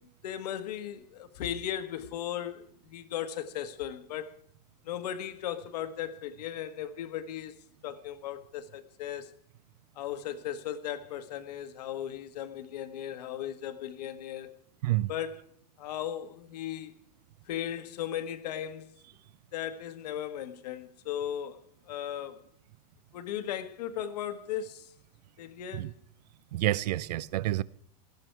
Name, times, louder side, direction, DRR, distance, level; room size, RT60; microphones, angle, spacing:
voice 1, 0.2-4.3 4.8-9.3 10.0-14.5 15.1-15.4 15.8-17.0 17.5-18.9 19.5-22.4 23.1-24.9 25.4-25.9, left 10 dB, 80° left, 1.6 m, -37 dB
voice 2, 26.5-27.6, right 16 dB, 85° right, 0.6 m, -28 dB
18.0 x 14.0 x 4.7 m
supercardioid pair, 170°, 20 cm